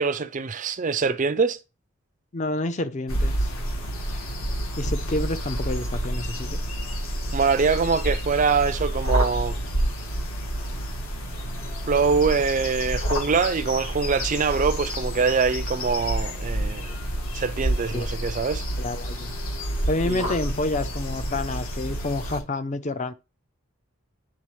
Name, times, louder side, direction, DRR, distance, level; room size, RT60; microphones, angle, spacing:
voice 1, 0.0-1.6 7.3-9.6 11.9-16.9 17.3-18.6 20.0-20.3, right 5 dB, 35° right, 0.4 m, -24 dB
voice 2, 2.3-3.5 4.1-4.2 4.8-6.6 17.9-18.1 18.8-19.3 19.9-23.1, left 2 dB, 30° left, 0.5 m, -29 dB
sound 1, 3.1-22.4, equal, 65° left, 1.7 m, -29 dB
9.7 x 3.7 x 3.2 m
head